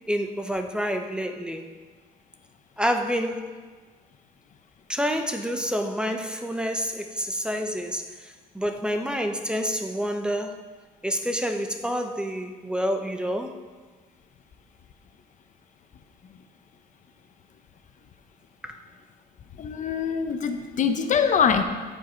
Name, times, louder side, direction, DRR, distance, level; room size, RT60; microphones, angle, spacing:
voice 1, 0.1-1.7 2.8-3.5 4.9-10.6 11.0-13.6 18.6-18.8, equal, 5° right, 5 dB, 0.9 m, -28 dB
voice 2, 19.6-21.6, left 7 dB, 50° left, 7 dB, 0.9 m, -23 dB
16.5 x 5.7 x 5.1 m, 1.4 s
cardioid pair, 110°, 17 cm